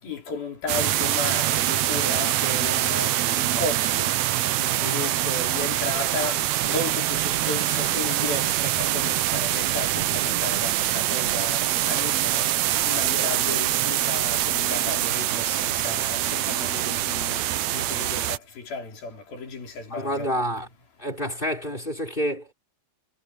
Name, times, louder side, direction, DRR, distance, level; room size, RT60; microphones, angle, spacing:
voice 1, 0.0-4.2 4.5-20.3, left 3 dB, 80° left, 6.9 m, -34 dB
sound 1, 0.7-18.4, right 13 dB, 75° right, 1.6 m, -24 dB
voice 2, 19.9-20.7 21.0-22.5, equal, 15° left, 5.1 m, -28 dB
omnidirectional pair, 4.2 m